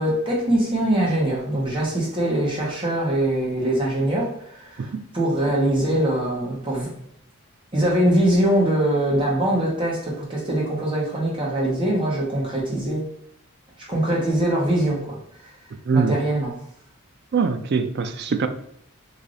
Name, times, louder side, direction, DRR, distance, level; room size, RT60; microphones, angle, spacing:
voice 1, 0.0-6.9 7.7-13.1 13.9-15.2 15.9-16.5, right 1 dB, 25° right, -4 dB, 1.1 m, -22 dB
voice 2, 15.9-16.2 17.3-18.5, right 5 dB, 50° right, 9 dB, 0.3 m, -23 dB
3.3 x 2.7 x 3.8 m, 0.69 s
head